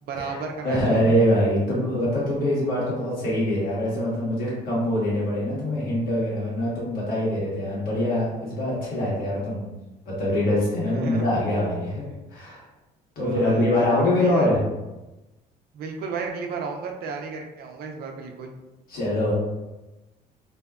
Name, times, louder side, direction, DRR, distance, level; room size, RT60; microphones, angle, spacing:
voice 1, 0.0-1.1 10.9-11.2 13.2-13.6 14.2-14.5 15.7-18.6, right 5 dB, 65° right, 3 dB, 0.5 m, -34 dB
voice 2, 0.6-9.7 10.0-12.0 12.3-12.6 13.1-14.6 18.9-19.3, left 1 dB, 60° left, -6 dB, 1.3 m, -24 dB
2.6 x 2.2 x 2.3 m, 1.0 s
cardioid pair, 105°, 17 cm